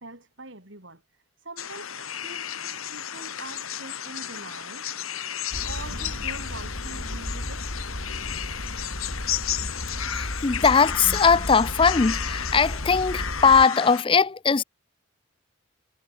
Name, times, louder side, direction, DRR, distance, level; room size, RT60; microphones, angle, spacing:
voice 1, 0.0-4.9 5.5-7.8, right 2 dB, 60° right, 5.7 m, -44 dB
sound 1, 1.6-14.0, left 9 dB, 85° left, 5.0 m, -33 dB
sound 2, 5.5-13.6, left 1 dB, 65° left, 4.0 m, -34 dB
voice 2, 10.0-14.6, left 5 dB, 25° left, 0.4 m, -20 dB
head